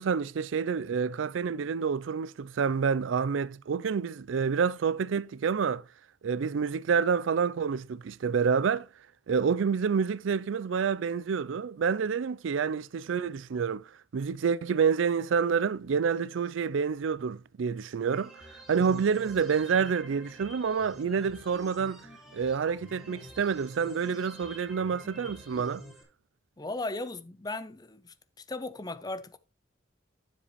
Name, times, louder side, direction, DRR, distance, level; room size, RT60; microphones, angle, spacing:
voice 1, 0.0-5.8 6.2-8.9 9.3-13.8 14.1-22.1 22.3-25.8, right 6 dB, 80° right, 0.4 m, -28 dB
sound 1, 18.0-26.0, equal, ahead, 2.2 m, -49 dB
voice 2, 26.6-28.1 28.5-29.4, left 2 dB, 20° left, 0.6 m, -36 dB
9.8 x 7.5 x 3.1 m
head